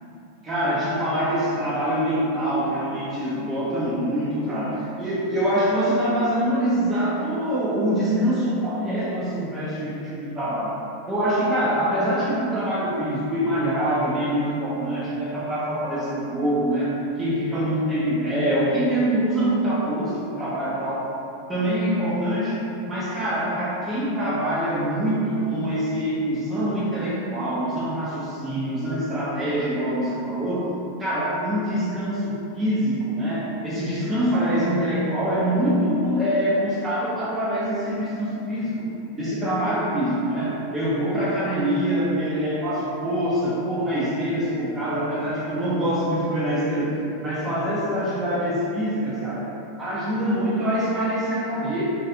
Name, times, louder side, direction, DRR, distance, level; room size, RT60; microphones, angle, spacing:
voice 1, 0.4-10.7 11.1-21.1 21.5-22.6 22.9-30.7 31.0-38.9 39.2-49.5 49.8-51.8, equal, 15° right, -8 dB, 0.5 m, -24 dB
3.1 x 2.4 x 2.6 m, 2.8 s
figure-of-eight pair, 90°, 0 cm